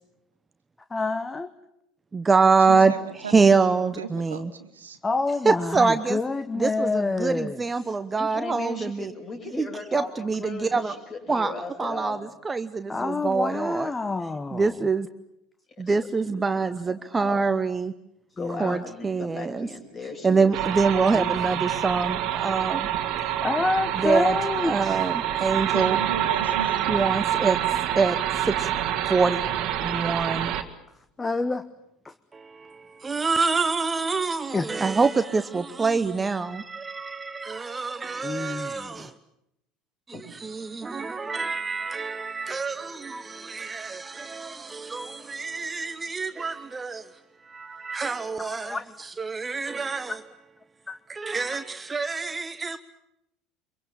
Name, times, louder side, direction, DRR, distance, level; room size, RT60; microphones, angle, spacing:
voice 1, 0.9-1.5 5.0-7.6 12.9-14.7 18.4-18.8 21.1-21.3 23.4-25.0 31.2-31.6 32.0-32.1 34.5-34.7 38.2-39.1 48.4-48.8 50.9-51.0, left 3 dB, 15° left, 1.0 m, -28 dB
voice 2, 2.1-4.5 5.4-6.2 6.5-9.1 9.6-10.9 11.3-11.5 11.8-13.9 14.5-15.1 15.8-17.9 18.6-19.7 20.2-22.9 23.9-24.3 24.6-26.0 26.9-28.7 29.1-29.5 29.8-30.5 32.3-39.1 40.1-50.2 51.1-52.8, right 4 dB, 20° right, 0.9 m, -25 dB
voice 3, 2.7-5.0 25.7-27.0, right 6 dB, 80° right, 1.7 m, -35 dB
voice 4, 8.2-12.2 15.8-16.0 16.2-17.4 18.4-20.5 40.1-40.2, left 3 dB, 35° left, 6.1 m, -37 dB
sound 1, 20.5-30.6, right 11 dB, 50° right, 1.7 m, -27 dB
25.5 x 23.5 x 7.1 m
figure-of-eight pair, 70°, 0 cm